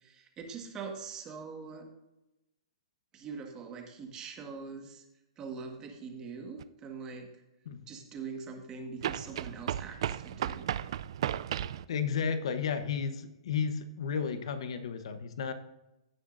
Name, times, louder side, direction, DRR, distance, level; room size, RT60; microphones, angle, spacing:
voice 1, 0.0-1.9 3.1-5.0 5.4-7.3 7.9-10.7, right 5 dB, 20° right, 3 dB, 1.5 m, -43 dB
sound 1, 6.6-6.7 9.0-11.8, right 11 dB, 60° right, 0.4 m, -34 dB
voice 2, 11.9-15.5, left 6 dB, 65° left, 10 dB, 1.0 m, -33 dB
16.0 x 7.1 x 2.6 m, 0.92 s
hypercardioid pair, 145°, 3 cm